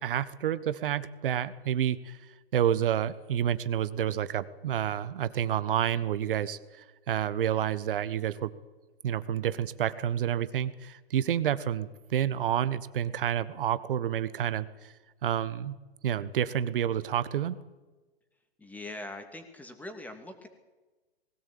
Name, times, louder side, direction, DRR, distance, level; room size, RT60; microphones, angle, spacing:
voice 1, 0.0-2.2 2.5-8.5 9.0-14.9 15.2-15.8 16.0-17.6, right 10 dB, 55° right, 15 dB, 1.4 m, -29 dB
voice 2, 18.6-20.5, left 2 dB, 5° left, 7 dB, 2.5 m, -42 dB
20.5 x 17.0 x 8.7 m, 1.2 s
hypercardioid pair, 130°, 31 cm